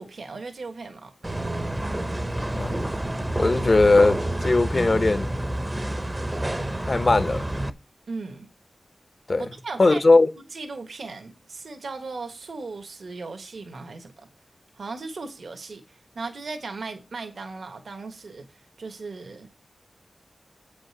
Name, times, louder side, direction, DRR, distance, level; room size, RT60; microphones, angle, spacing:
voice 1, 0.0-1.4 8.1-8.5 9.4-10.0 10.4-14.3 14.8-18.5 18.8-19.5, right 3 dB, 75° right, 1.4 m, -37 dB
sound 1, 1.2-7.7, right 1 dB, 20° right, 0.7 m, -28 dB
voice 2, 2.5-2.8 3.4-5.3 6.9-7.5 9.3-9.4 9.8-10.3, left 3 dB, 45° left, 0.9 m, -19 dB
8.2 x 5.2 x 6.1 m
wide cardioid pair, 90°, 0 cm